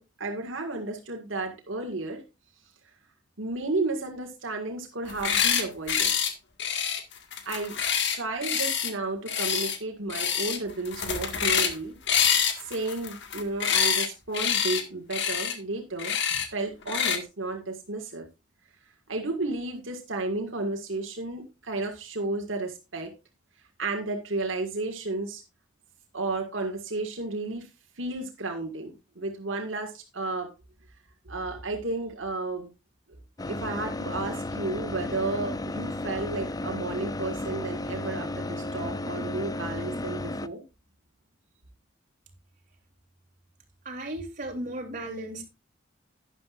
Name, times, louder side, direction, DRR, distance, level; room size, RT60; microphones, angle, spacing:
voice 1, 0.0-2.2 3.4-6.1 7.5-7.8 8.1-12.0 12.6-18.3 19.1-23.1 23.8-25.4 26.1-27.7 28.0-30.5 31.3-32.7 33.5-40.6, right 2 dB, 80° right, 1.9 m, -32 dB
sound 1, 5.1-5.6 5.9-6.3 6.6-8.9 9.3-9.8 10.1-10.6 10.8-11.8 12.1-14.1 14.3-14.8 15.1-15.5 16.0-16.5 16.9-17.2, left 8 dB, 65° left, 1.8 m, -26 dB
sound 2, 33.4-40.5, left 2 dB, 20° left, 0.5 m, -33 dB
voice 2, 43.8-45.4, right 1 dB, 45° right, 3.3 m, -35 dB
12.0 x 10.5 x 2.5 m
head